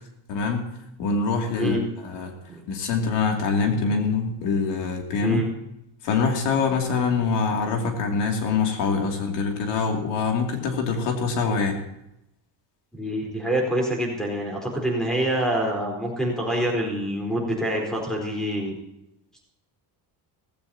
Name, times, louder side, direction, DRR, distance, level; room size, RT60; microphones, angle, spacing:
voice 1, 0.3-0.7 1.0-2.3 2.7-5.5 6.0-11.8, left 5 dB, 80° left, 2 dB, 2.8 m, -24 dB
voice 2, 12.9-18.8, right 1 dB, ahead, -1 dB, 4.2 m, -26 dB
17.0 x 16.0 x 2.9 m, 0.84 s
cardioid pair, 165°, 42 cm